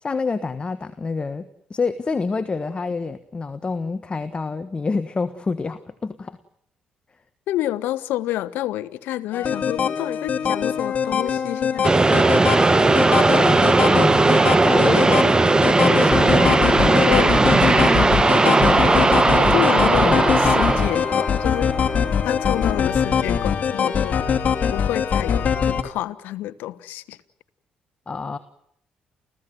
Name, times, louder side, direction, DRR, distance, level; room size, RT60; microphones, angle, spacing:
voice 1, 0.0-6.4 13.3-14.3 14.6-15.3 15.8-16.3 20.1-20.2 28.1-28.4, left 4 dB, 35° left, 11 dB, 1.4 m, -27 dB
voice 2, 7.5-12.1 14.9-15.3 16.0-18.2 18.4-24.2 24.7-27.2, left 14 dB, 80° left, 14 dB, 1.1 m, -29 dB
sound 1, 9.3-25.8, left 7 dB, 55° left, 2.8 m, -23 dB
sound 2, 11.8-22.1, right 3 dB, 25° right, 1.0 m, -17 dB
29.5 x 15.5 x 9.3 m, 0.72 s
supercardioid pair, 55°, 3 cm